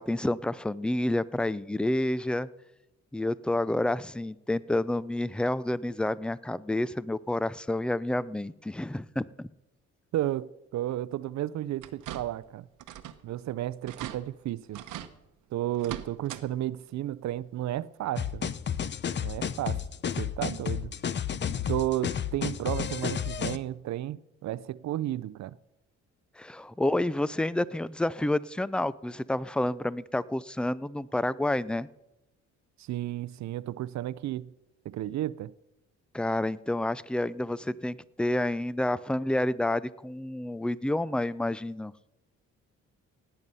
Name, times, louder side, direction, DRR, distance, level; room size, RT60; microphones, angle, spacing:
voice 1, 0.0-2.5 3.1-9.5 26.4-31.9 36.1-41.9, left 1 dB, 5° left, 0.4 m, -29 dB
voice 2, 10.1-12.7 13.2-14.8 15.5-18.5 19.2-19.8 20.2-20.9 21.7-25.6 32.8-34.5 34.9-35.5, right 13 dB, 65° right, 0.5 m, -33 dB
sound 1, 11.8-12.5 12.8-13.2 13.5-13.6 13.9-14.2 14.7-15.1 15.7-16.4 16.8-16.9 18.3-18.4 18.9-19.0, right 11 dB, 85° right, 1.0 m, -40 dB
sound 2, 18.2-23.6, left 8 dB, 35° left, 0.7 m, -32 dB
17.0 x 9.1 x 5.5 m
cardioid pair, 90°, 30 cm